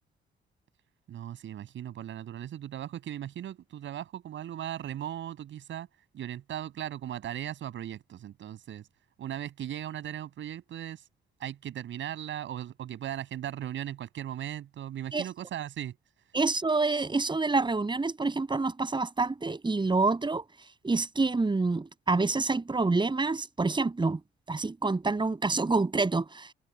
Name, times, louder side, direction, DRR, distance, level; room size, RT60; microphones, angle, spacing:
voice 1, 1.1-5.9 6.1-8.8 9.2-11.0 11.4-15.9, right 11 dB, 70° right, 7.9 m, -38 dB
voice 2, 16.3-20.4 20.8-24.2 24.5-26.5, right 3 dB, 25° right, 6.5 m, -27 dB
cardioid pair, 90°, 20 cm